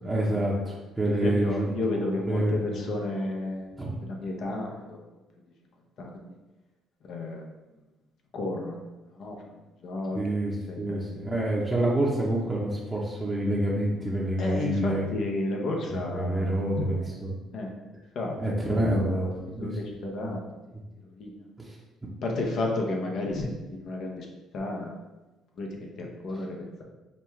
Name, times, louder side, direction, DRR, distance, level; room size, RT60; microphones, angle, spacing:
voice 1, 0.0-1.7 2.1-2.9 3.8-4.0 10.1-15.1 15.9-17.4 18.3-19.3 19.6-19.8 20.2-20.3 21.6-21.7, right 1 dB, 15° right, -6 dB, 0.8 m, -27 dB
voice 2, 1.1-3.7 4.1-5.0 6.0-6.3 7.1-7.4 8.3-8.7 9.1-9.4 9.8-10.2 10.7-11.0 14.4-17.1 17.5-17.7 18.1-18.3 18.7-20.4 21.2-21.3 22.2-24.3 24.5-24.9 25.6-25.7 26.0-26.5, left 2 dB, 60° left, 1 dB, 0.9 m, -32 dB
5.3 x 2.2 x 3.2 m, 1.1 s
supercardioid pair, 70°, 0 cm